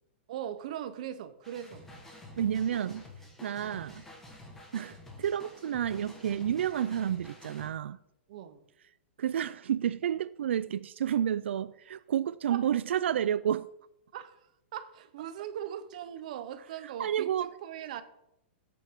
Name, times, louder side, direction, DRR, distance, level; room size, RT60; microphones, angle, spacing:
voice 1, 0.3-1.9 3.6-3.8 5.9-6.0 8.3-8.6 12.5-12.7 14.1-14.4 14.7-18.0, right 10 dB, 40° right, 0.7 m, -40 dB
sound 1, 1.4-7.7, left 1 dB, 5° left, 1.3 m, -50 dB
voice 2, 2.4-3.1 3.4-4.0 4.7-8.0 9.2-13.7 16.8-17.5, right 9 dB, 85° right, 0.3 m, -30 dB
15.0 x 8.4 x 3.6 m
hypercardioid pair, 180°, 6 cm